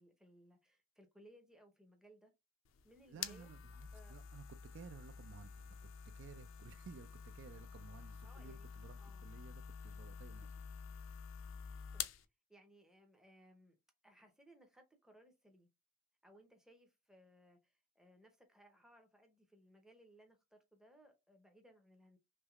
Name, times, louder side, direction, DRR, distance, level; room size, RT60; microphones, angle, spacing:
voice 1, 0.0-2.3 2.8-3.5 3.9-4.2 8.2-8.7 9.0-9.3 11.6-12.1 12.5-13.8 14.0-15.7 16.2-22.2, right 1 dB, 5° right, 0.6 m, -64 dB
sound 1, 2.6-12.2, left 7 dB, 65° left, 0.4 m, -49 dB
voice 2, 3.1-5.8 6.0-10.4 11.1-11.2, right 5 dB, 55° right, 0.3 m, -56 dB
3.3 x 3.1 x 2.3 m
head